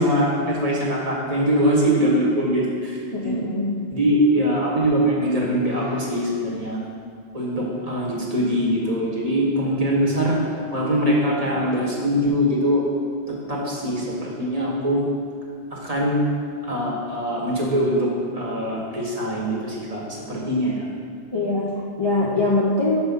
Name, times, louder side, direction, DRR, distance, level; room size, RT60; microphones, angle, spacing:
voice 1, 0.0-3.3 3.9-6.8 7.3-12.8 13.5-15.0 15.7-16.2 16.6-20.9, equal, 35° right, -4 dB, 1.4 m, -22 dB
voice 2, 3.1-3.7 21.3-23.0, left 2 dB, 30° left, -4 dB, 0.5 m, -22 dB
6.1 x 5.3 x 5.3 m, 2.2 s
omnidirectional pair, 1.1 m